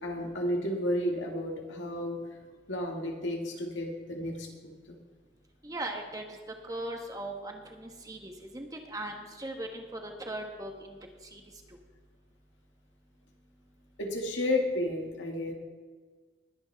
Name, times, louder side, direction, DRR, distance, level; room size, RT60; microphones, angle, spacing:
voice 1, 0.0-2.2 2.7-4.5 4.9-5.0 14.0-15.5, left 1 dB, 90° left, 0 dB, 2.0 m, -32 dB
voice 2, 5.6-6.2 6.7-11.0 11.3-11.4, right 1 dB, 20° right, 3 dB, 1.2 m, -39 dB
20.5 x 8.0 x 3.5 m, 1.5 s
head